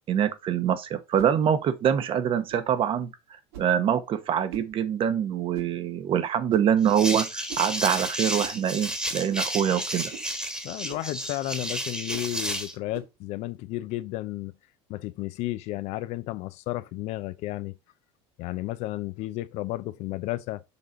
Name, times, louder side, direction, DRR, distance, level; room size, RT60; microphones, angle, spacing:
voice 1, 0.1-3.1 3.6-10.1, right 9 dB, 45° right, 1.0 m, -25 dB
sound 1, 1.1-1.4 2.5-2.7 3.5-3.8 4.5-4.7 5.5-5.8 6.5-6.8 7.5-7.7 8.4-8.6 9.3-9.5 10.1-10.3 10.9-11.1 12.1-12.3 12.9-13.1, right 9 dB, 85° right, 1.6 m, -43 dB
sound 2, 6.8-12.7, right 1 dB, 5° right, 1.5 m, -32 dB
voice 2, 10.6-14.6 14.9-17.8 18.4-20.6, left 16 dB, 60° left, 0.6 m, -33 dB
7.1 x 3.9 x 3.9 m
supercardioid pair, 115°, 13 cm